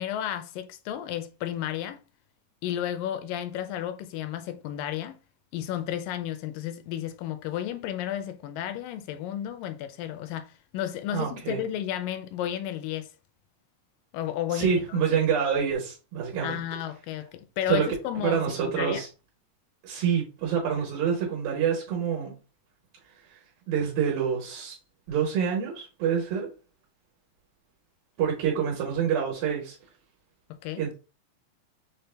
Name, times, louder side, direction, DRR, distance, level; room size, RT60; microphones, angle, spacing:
voice 1, 0.0-2.0 2.6-5.2 5.5-13.1 14.1-15.1 16.4-19.0 30.6-30.8, left 11 dB, 80° left, 2.1 m, -32 dB
voice 2, 11.1-11.6 14.5-16.6 17.7-17.9 18.2-19.1 19.8-22.4 23.3-23.4 23.7-24.8 25.1-26.5 28.2-29.8 30.8-30.9, right 7 dB, 90° right, 3.0 m, -27 dB
6.4 x 2.1 x 3.3 m
omnidirectional pair, 4.0 m